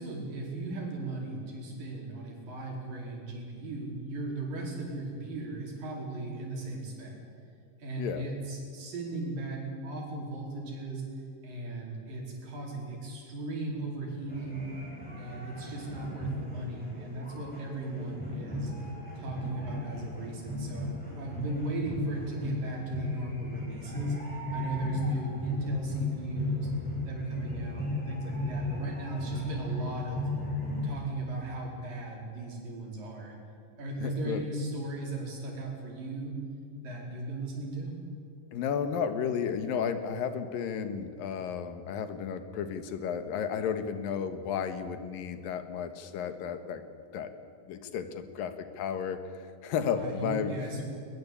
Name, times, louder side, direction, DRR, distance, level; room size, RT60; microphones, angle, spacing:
voice 1, 0.0-7.2 7.8-11.0 11.4-14.7 15.2-18.7 19.2-24.2 24.5-26.7 27.1-30.3 30.8-33.3 33.8-36.4 36.8-38.0 50.0-50.9, right 2 dB, 75° right, -1 dB, 6.3 m, -37 dB
sound 1, 14.3-31.0, left 1 dB, ahead, 7.6 m, -35 dB
voice 2, 34.0-34.4 38.5-46.8 47.1-47.3 47.7-50.5, left 7 dB, 85° left, 10 dB, 3.1 m, -33 dB
21.5 x 20.5 x 8.5 m, 2.5 s
omnidirectional pair, 3.9 m